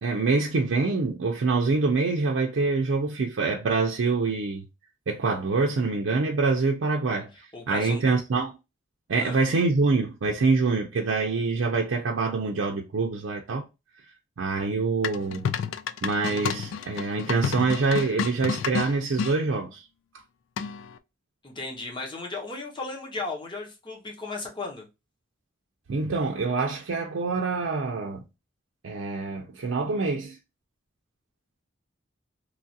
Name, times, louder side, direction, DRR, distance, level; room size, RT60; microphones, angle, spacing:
voice 1, 0.0-4.7 5.1-7.3 7.7-8.6 9.1-13.6 14.4-15.5 16.0-19.8 25.9-28.2 28.8-30.4, right 4 dB, 80° right, 0.5 m, -25 dB
voice 2, 7.5-8.0 9.2-9.4 21.4-24.9, left 3 dB, 25° left, 0.8 m, -35 dB
sound 1, 15.0-19.4 20.6-21.0, left 6 dB, 85° left, 0.3 m, -30 dB
3.1 x 2.4 x 2.7 m
head